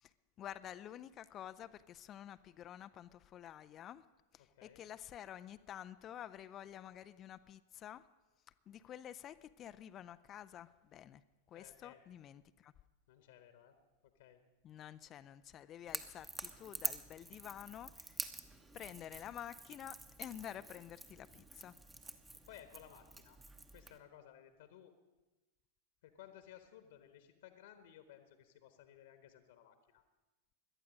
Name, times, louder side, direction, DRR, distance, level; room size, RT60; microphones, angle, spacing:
voice 1, 0.0-4.1 4.3-8.1 8.7-11.2 11.5-12.7 14.6-18.2 18.7-21.8, left 10 dB, 30° left, 14 dB, 0.4 m, -50 dB
voice 2, 4.4-4.8 11.5-12.0 13.1-13.8 14.0-14.4 15.9-16.1 22.3-23.4 23.7-24.9 26.0-30.0, left 11 dB, 55° left, 9 dB, 1.2 m, -58 dB
Crackle / Crack, 15.9-24.0, right 2 dB, 10° right, 1.0 m, -47 dB
18.0 x 12.0 x 5.2 m, 1.1 s
figure-of-eight pair, 90°, 0 cm